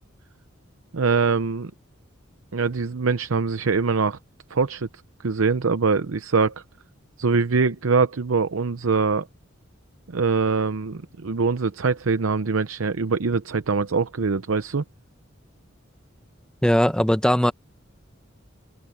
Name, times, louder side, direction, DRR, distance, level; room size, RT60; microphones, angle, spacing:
voice 1, 0.9-1.7 2.5-4.2 4.5-4.9 5.2-6.5 7.2-9.3 10.1-14.8, right 4 dB, 85° right, 0.7 m, -23 dB
voice 2, 16.6-17.5, equal, 5° left, 0.8 m, -19 dB
head